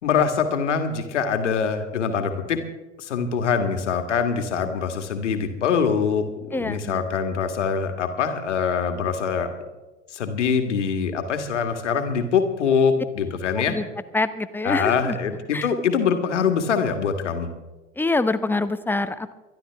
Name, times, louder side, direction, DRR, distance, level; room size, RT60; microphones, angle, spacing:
voice 1, 0.0-2.6 3.0-6.2 6.5-9.5 10.1-13.7 14.6-17.5, left 6 dB, 75° left, 7 dB, 1.8 m, -23 dB
voice 2, 6.5-7.0 13.6-13.8 14.1-15.2 15.5-15.7 18.0-19.3, left 2 dB, 5° left, 12 dB, 0.8 m, -25 dB
23.5 x 11.5 x 3.5 m, 1.1 s
figure-of-eight pair, 75°, 36 cm